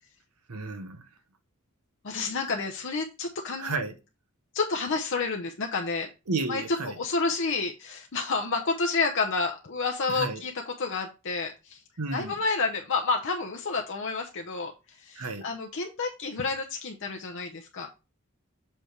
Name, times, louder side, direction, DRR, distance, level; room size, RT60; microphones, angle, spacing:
voice 1, 0.5-1.0 3.6-3.9 6.3-7.0 10.1-10.4 12.0-12.3 15.2-15.4, right 3 dB, 90° right, 1.0 m, -32 dB
voice 2, 2.0-3.8 4.5-6.1 6.5-11.8 12.1-17.9, left 4 dB, 60° left, 0.7 m, -30 dB
7.4 x 3.4 x 4.6 m
head